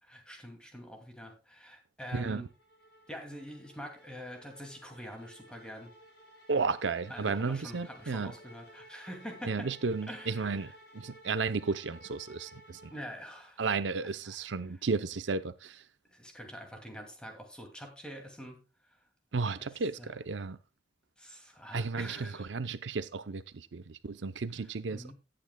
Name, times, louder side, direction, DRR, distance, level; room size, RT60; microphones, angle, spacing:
voice 1, 0.0-2.5 3.1-5.9 7.1-9.7 10.1-10.7 12.9-13.6 14.2-14.6 16.1-18.6 19.6-19.7 20.0-20.1 21.2-22.5 24.6-25.1, equal, 5° left, 2.3 m, -45 dB
voice 2, 2.1-2.5 6.5-8.3 9.5-12.8 13.6-15.8 19.3-20.6 21.7-25.1, right 4 dB, 80° right, 0.6 m, -33 dB
sound 1, 2.4-13.6, equal, 75° left, 5.3 m, -55 dB
17.5 x 8.7 x 2.2 m
head